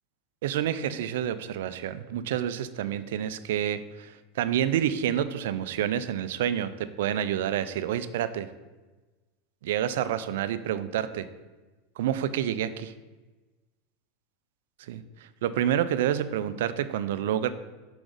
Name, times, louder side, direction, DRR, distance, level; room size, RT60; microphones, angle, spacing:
voice 1, 0.4-8.5 9.6-11.3 12.0-12.9 14.9-15.0 15.4-17.5, right 10 dB, 75° right, 13 dB, 0.4 m, -28 dB
6.0 x 5.0 x 5.2 m, 1.2 s
hypercardioid pair, 110°, 0 cm